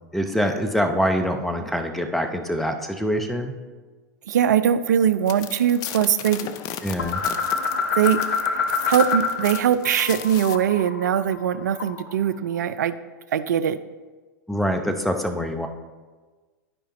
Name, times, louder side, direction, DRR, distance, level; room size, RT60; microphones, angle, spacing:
voice 1, 0.1-3.5 6.8-7.2 14.5-15.7, equal, ahead, 5 dB, 0.8 m, -24 dB
voice 2, 4.3-6.5 8.0-12.9 13.3-13.8, right 9 dB, 70° right, 13 dB, 0.4 m, -21 dB
sound 1, 5.3-10.6, left 10 dB, 40° left, 0.5 m, -36 dB
sound 2, 7.0-9.6 9.8-12.1, left 5 dB, 80° left, 0.6 m, -26 dB
13.0 x 5.0 x 2.9 m, 1.3 s
figure-of-eight pair, 90°, 10 cm